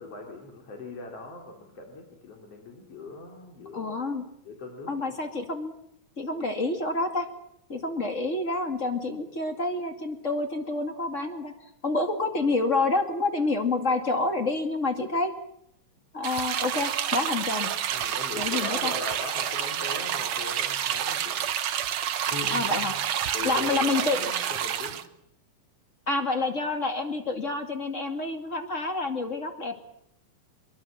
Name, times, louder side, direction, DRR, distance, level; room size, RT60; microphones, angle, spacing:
voice 1, 0.0-3.9 4.4-5.1 17.9-21.4 22.2-22.9 23.3-25.0, left 2 dB, 45° left, 1 dB, 4.2 m, -40 dB
voice 2, 3.7-4.2 4.9-5.7 6.2-7.3 7.7-11.5 11.8-15.3 16.1-17.7 18.4-18.9 22.5-22.9 23.4-24.3 26.1-29.8, left 3 dB, 25° left, 5 dB, 2.3 m, -28 dB
sound 1, 16.2-25.0, right 10 dB, 60° right, 1.6 m, -29 dB
23.5 x 23.0 x 7.5 m, 0.74 s
omnidirectional pair, 3.8 m